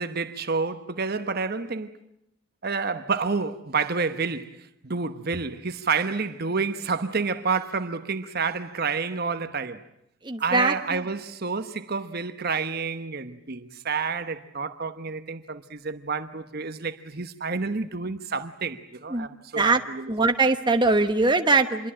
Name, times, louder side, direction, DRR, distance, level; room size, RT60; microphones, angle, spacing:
voice 1, 0.0-1.9 2.6-9.8 10.4-20.1, right 4 dB, 45° right, 1.1 m, -29 dB
voice 2, 10.2-11.0 19.1-19.3 19.6-19.8 20.1-21.9, right 3 dB, 20° right, 1.1 m, -22 dB
27.5 x 23.0 x 8.8 m
head